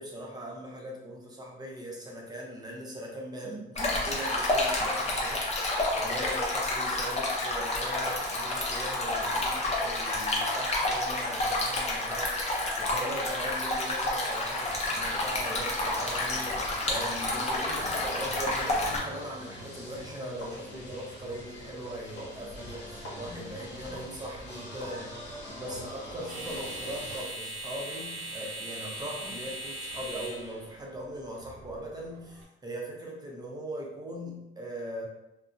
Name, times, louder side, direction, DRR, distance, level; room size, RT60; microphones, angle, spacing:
voice 1, 0.0-5.4 5.7-35.1, right 1 dB, 20° right, -2 dB, 0.7 m, -40 dB
Stream, 3.7-19.0, left 2 dB, 35° left, 0.7 m, -29 dB
sound 1, 14.6-27.3, equal, 60° left, 0.9 m, -43 dB
sound 2, 21.1-32.4, right 1 dB, 85° right, 0.8 m, -42 dB
2.5 x 2.1 x 2.5 m, 0.93 s
cardioid pair, 90°, 20 cm